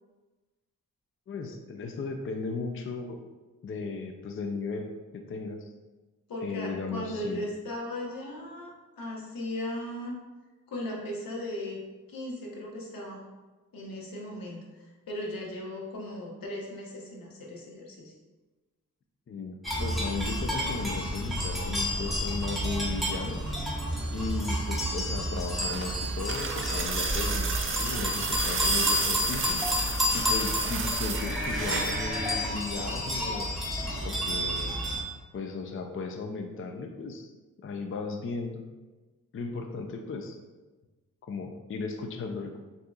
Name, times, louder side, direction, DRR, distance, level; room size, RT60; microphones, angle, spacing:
voice 1, 1.3-3.2 3.6-4.9 5.1-5.7 6.4-7.4 19.3-23.4 24.1-29.6 30.1-33.5 34.0-34.8 35.3-37.3 37.6-38.6 39.3-40.4 41.2-42.6, left 4 dB, 40° left, 4 dB, 0.4 m, -36 dB
voice 2, 6.3-10.2 10.7-11.8 12.1-13.2 13.7-18.1, left 1 dB, 85° left, -1 dB, 1.0 m, -37 dB
sound 1, 19.6-35.0, equal, ahead, 1.1 m, -30 dB
sound 2, 25.3-32.0 33.3-33.4, right 5 dB, 40° right, 0.4 m, -32 dB
6.3 x 2.8 x 2.3 m, 1.2 s
wide cardioid pair, 90°, 33 cm